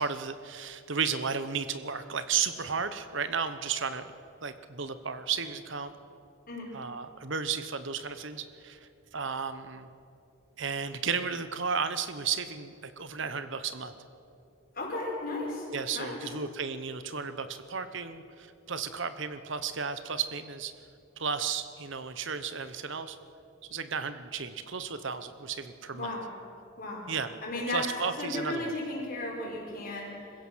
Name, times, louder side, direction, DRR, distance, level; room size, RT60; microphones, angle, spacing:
voice 1, 0.0-4.1 4.4-5.9 6.7-9.9 10.6-13.9 15.7-20.7 21.2-23.2 23.7-26.2 27.1-27.3 27.7-28.7, right 6 dB, 60° right, 11 dB, 1.0 m, -33 dB
voice 2, 14.7-15.7 15.9-16.2 25.9-26.3 26.8-27.1 27.4-27.9 28.2-30.3, left 2 dB, 45° left, -3 dB, 5.7 m, -35 dB
26.5 x 16.0 x 6.3 m, 2.7 s
head